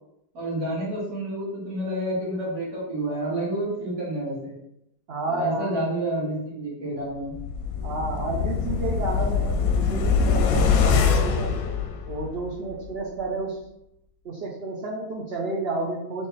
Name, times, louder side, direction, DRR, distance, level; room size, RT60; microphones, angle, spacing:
voice 1, 0.3-4.5 5.3-7.3, right 1 dB, 75° right, -6 dB, 2.0 m, -29 dB
voice 2, 5.1-5.8 7.8-11.6 12.1-13.6 14.2-16.3, right 3 dB, 55° right, -3 dB, 0.7 m, -31 dB
sound 1, 7.3-12.5 12.8-12.9, left 5 dB, 70° left, 0.9 m, -23 dB
3.5 x 3.4 x 4.1 m, 0.81 s
omnidirectional pair, 1.7 m